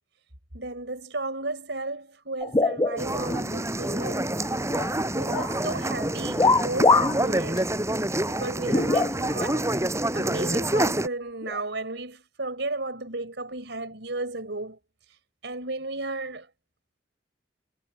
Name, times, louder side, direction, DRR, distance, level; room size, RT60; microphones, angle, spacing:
voice 1, 0.5-4.3 5.2-7.7 8.3-9.7 10.1-14.8 15.4-16.5, right 2 dB, 70° right, 6.2 m, -34 dB
sound 1, 2.4-3.5 3.8-4.9 5.3-5.6 6.4-7.2 7.6-7.7 8.7-9.5 10.4-10.5 11.4-11.6, left 3 dB, 20° left, 0.9 m, -23 dB
sound 2, 3.0-11.1, right 1 dB, 15° right, 5.7 m, -27 dB
head